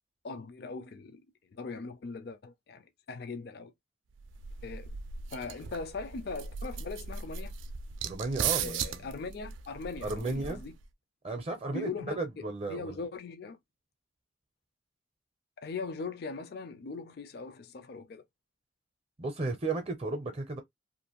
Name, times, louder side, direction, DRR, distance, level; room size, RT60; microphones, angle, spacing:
voice 1, 0.2-1.2 1.5-3.7 4.6-5.0 5.3-7.5 8.6-10.7 11.7-12.4 12.7-13.6 15.6-18.2, left 4 dB, 55° left, 0.4 m, -40 dB
sound 1, 4.2-10.9, right 7 dB, 80° right, 0.4 m, -37 dB
voice 2, 8.0-9.0 10.0-10.6 11.2-13.0 19.2-20.6, right 3 dB, 30° right, 0.5 m, -34 dB
2.5 x 2.4 x 2.8 m
head